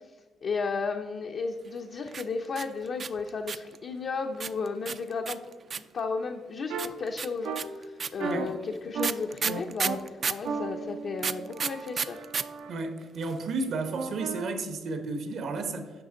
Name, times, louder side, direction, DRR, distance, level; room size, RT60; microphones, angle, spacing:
voice 1, 0.4-5.4 5.7-12.2, left 4 dB, 55° left, 3 dB, 0.6 m, -34 dB
sound 1, 2.1-3.8 4.4-6.0 6.8-10.5 11.2-12.4 12.7-12.8 13.0-13.5, right 6 dB, 45° right, 0.3 m, -31 dB
sound 2, 6.7-6.9 7.4-7.6 8.2-8.5 8.9-9.1 9.4-10.0 10.4-12.7 13.9-14.5, right 5 dB, 85° right, 0.7 m, -34 dB
voice 2, 12.7-15.9, right 3 dB, 70° right, 7 dB, 1.1 m, -32 dB
9.4 x 5.6 x 3.8 m, 1.4 s
cardioid pair, 90°, 0 cm